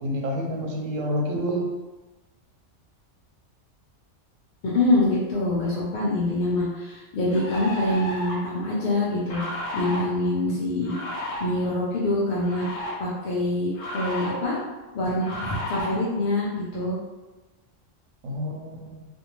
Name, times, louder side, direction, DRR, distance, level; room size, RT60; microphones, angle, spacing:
voice 1, 0.0-1.7 18.2-19.0, equal, 85° right, 1 dB, 0.9 m, -28 dB
voice 2, 4.6-9.4 9.7-10.9 11.4-14.6 14.9-17.0, left 2 dB, 55° left, -6 dB, 0.5 m, -25 dB
sound 1, 6.4-6.5 7.3-8.5 9.3-10.0 10.8-11.5 12.4-12.9 13.8-14.4 15.2-15.9, left 1 dB, 85° left, 1.0 m, -33 dB
2.6 x 2.1 x 2.9 m, 1.1 s
omnidirectional pair, 1.3 m